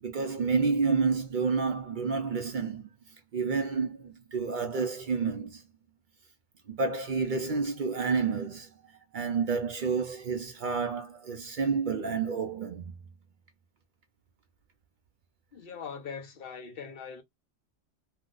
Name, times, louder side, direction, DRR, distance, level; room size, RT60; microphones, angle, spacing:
voice 1, 0.0-2.9 3.3-5.6 6.7-8.7 9.1-12.9, right 5 dB, 55° right, 0.6 m, -29 dB
voice 2, 15.5-17.2, left 6 dB, 55° left, 0.9 m, -41 dB
2.8 x 2.1 x 3.7 m
omnidirectional pair, 1.2 m